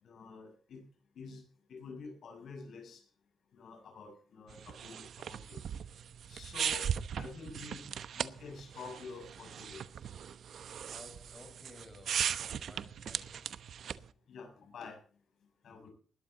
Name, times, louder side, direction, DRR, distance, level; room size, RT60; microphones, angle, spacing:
voice 1, 0.0-0.8 1.1-1.4 1.7-3.0 3.5-5.6 6.3-6.9 7.2-7.9 8.1-9.8 14.3-15.0 15.6-15.9, left 4 dB, 70° left, 4 dB, 6.8 m, -48 dB
sound 1, 4.5-14.1, right 8 dB, 70° right, 0.9 m, -39 dB
voice 2, 10.6-13.6 15.6-15.8, left 2 dB, 15° left, 5 dB, 5.9 m, -56 dB
20.0 x 12.5 x 4.1 m, 0.42 s
cardioid pair, 85°, 0 cm